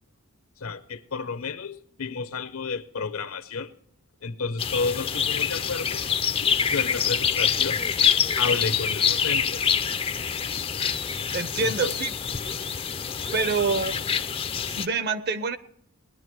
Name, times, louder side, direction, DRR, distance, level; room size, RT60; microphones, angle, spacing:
voice 1, 0.6-3.7 4.2-6.0 6.4-7.8 8.4-9.6 11.6-12.0, left 4 dB, 70° left, 0.8 m, -31 dB
sound 1, 4.6-14.9, left 7 dB, 25° left, 0.5 m, -26 dB
voice 2, 11.3-12.2 13.3-14.0 14.7-15.6, right 4 dB, 45° right, 0.8 m, -26 dB
19.0 x 10.5 x 4.6 m
head